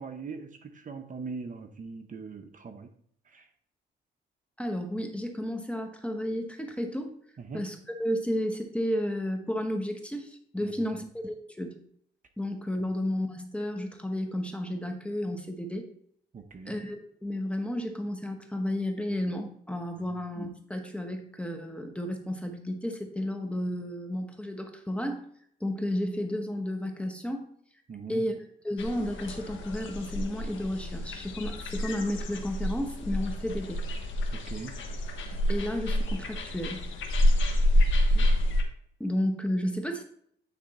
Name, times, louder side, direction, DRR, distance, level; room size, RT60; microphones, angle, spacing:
voice 1, 0.0-2.9 3.3-3.5 7.4-7.6 10.6-11.0 16.3-16.8 20.1-20.2 27.9-28.3 34.3-34.8 38.1-38.3, right 5 dB, 40° right, 6 dB, 0.9 m, -41 dB
voice 2, 4.6-7.1 7.5-11.7 12.4-15.9 16.6-25.2 25.6-27.4 28.1-28.3 28.6-33.8 35.5-36.9 39.0-40.0, left 1 dB, 5° left, 4 dB, 1.2 m, -32 dB
sound 1, 28.8-38.6, left 1 dB, 75° left, 1.3 m, -28 dB
9.6 x 3.4 x 4.2 m, 0.64 s
cardioid pair, 90°, 20 cm